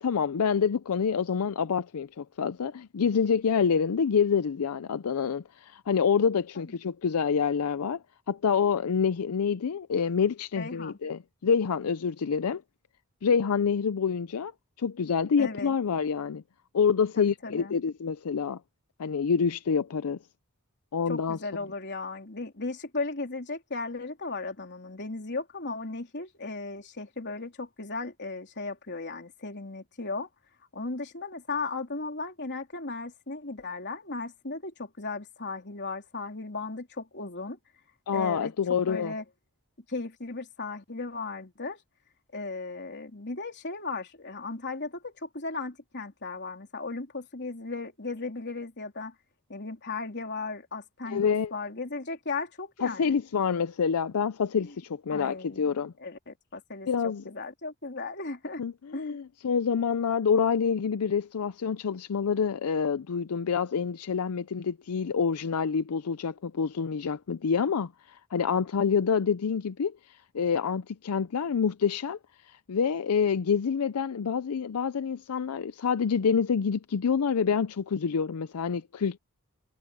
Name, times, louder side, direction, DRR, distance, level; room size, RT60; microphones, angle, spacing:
voice 1, 0.0-8.0 8.3-12.6 13.2-14.5 14.8-16.4 16.7-18.6 19.0-20.2 20.9-21.4 38.1-39.1 51.1-51.5 52.8-55.9 56.9-57.2 58.6-72.2 72.4-79.2, left 6 dB, 80° left, 0.5 m, -27 dB
voice 2, 10.6-11.0 15.4-15.7 17.2-17.8 21.1-30.3 30.7-37.6 38.1-38.5 38.9-39.2 39.9-41.8 42.3-49.1 49.5-53.2 54.6-54.7 55.1-55.7 56.0-58.6 58.9-59.2, left 3 dB, 50° left, 3.7 m, -36 dB
head